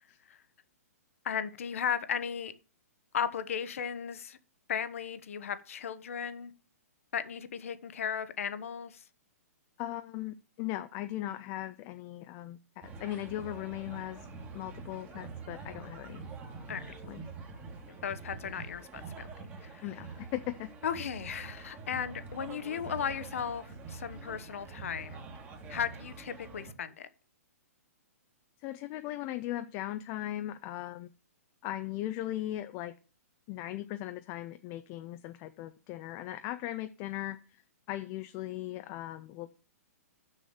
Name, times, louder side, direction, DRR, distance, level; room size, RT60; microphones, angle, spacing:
voice 1, 1.2-2.5 3.1-4.4 4.7-6.5 7.1-9.0 16.7-16.9 17.9-19.3 19.6-19.8 20.8-25.2 25.7-27.1, left 8 dB, 60° left, 0.9 m, -36 dB
voice 2, 9.8-14.3 14.5-16.2 17.0-17.2 19.8-20.7 28.6-31.1 31.6-32.9 33.5-37.6 37.9-39.5, left 14 dB, 30° left, 0.5 m, -38 dB
sound 1, 12.8-26.7, right 4 dB, 20° right, 1.7 m, -45 dB
6.5 x 6.3 x 7.3 m
figure-of-eight pair, 120°, 8 cm